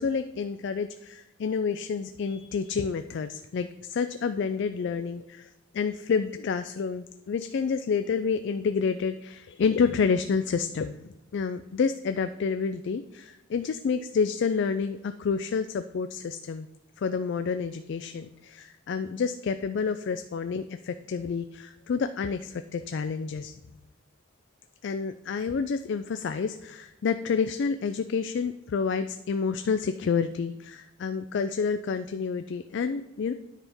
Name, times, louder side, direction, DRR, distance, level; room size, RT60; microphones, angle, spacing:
voice 1, 0.0-5.5 5.7-16.7 17.0-23.5 24.8-33.3, left 5 dB, 60° left, 9 dB, 0.3 m, -29 dB
9.8 x 3.5 x 5.4 m, 0.95 s
head